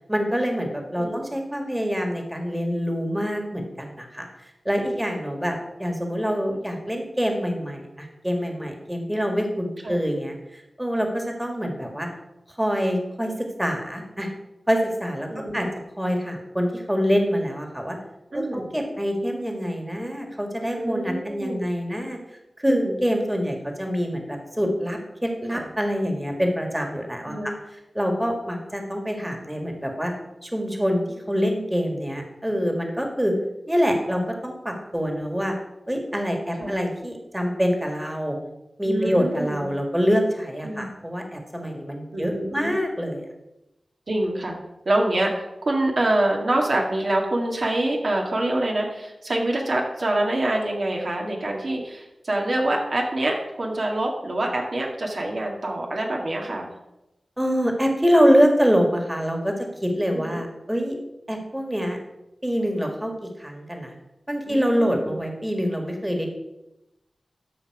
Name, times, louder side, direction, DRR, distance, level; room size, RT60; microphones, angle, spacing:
voice 1, 0.1-4.3 4.7-12.1 12.5-14.3 14.7-15.7 16.0-18.0 18.3-22.2 22.6-27.5 27.9-30.1 30.4-33.4 33.7-35.5 35.9-38.4 38.8-43.3 57.4-61.0 61.3-62.0 62.4-63.9 64.3-66.3, equal, 10° right, 3 dB, 1.9 m, -25 dB
voice 2, 15.3-15.7 18.3-18.7 20.7-21.7 22.7-23.0 25.5-25.6 27.3-27.6 34.1-34.2 36.6-36.8 38.8-39.7 40.6-40.9 42.1-42.7 44.1-44.5 44.9-56.7 60.1-60.4 64.5-65.2, right 1 dB, 65° right, 0 dB, 2.1 m, -26 dB
13.0 x 5.4 x 4.9 m, 0.93 s
cardioid pair, 50°, 0 cm